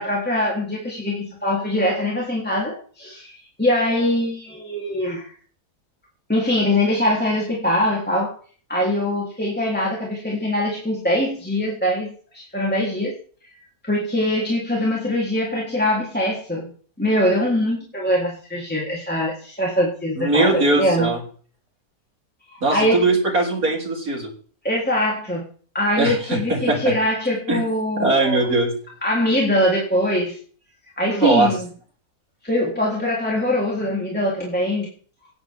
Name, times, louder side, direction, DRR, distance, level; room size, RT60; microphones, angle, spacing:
voice 1, 0.0-5.3 6.3-8.3 8.7-12.1 12.3-13.1 13.8-16.7 17.0-21.1 22.7-23.1 24.6-25.5 25.7-28.5 29.0-30.4 31.0-31.7 32.4-34.9, left 1 dB, 5° left, -4 dB, 3.5 m, -22 dB
voice 2, 20.2-21.2 22.6-24.3 26.0-26.9 27.5-27.6 28.0-28.7 31.1-31.5, right 2 dB, 60° right, -1 dB, 4.3 m, -20 dB
15.5 x 11.0 x 3.7 m, 0.42 s
omnidirectional pair, 1.7 m